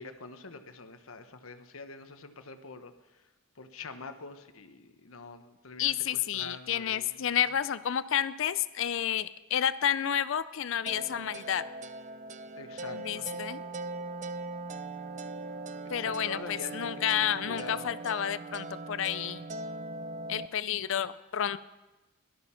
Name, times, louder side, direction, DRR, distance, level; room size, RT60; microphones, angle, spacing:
voice 1, 0.0-3.2 3.6-7.5 12.6-13.3 16.0-17.9, left 3 dB, 80° left, 9 dB, 1.0 m, -45 dB
voice 2, 5.8-11.6 12.9-13.6 15.9-19.5 20.3-21.6, left 9 dB, 65° left, 15 dB, 0.4 m, -30 dB
sound 1, 10.9-20.5, right 2 dB, 35° right, 0.5 m, -40 dB
17.5 x 12.5 x 5.7 m, 1.1 s
head